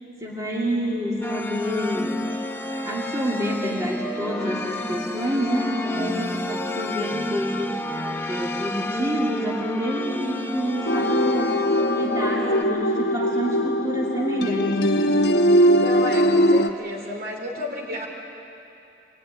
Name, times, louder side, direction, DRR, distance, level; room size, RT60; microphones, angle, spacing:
voice 1, 0.2-2.2 2.8-7.8 8.3-11.6 11.9-15.0, equal, 20° right, -4 dB, 2.5 m, -28 dB
sound 1, 1.2-12.6, left 1 dB, 10° left, 1.0 m, -30 dB
sound 2, 10.8-16.7, equal, 65° left, 1.1 m, -20 dB
voice 2, 15.8-18.1, left 1 dB, 55° right, 0 dB, 4.1 m, -32 dB
24.5 x 19.5 x 10.0 m, 2.8 s
head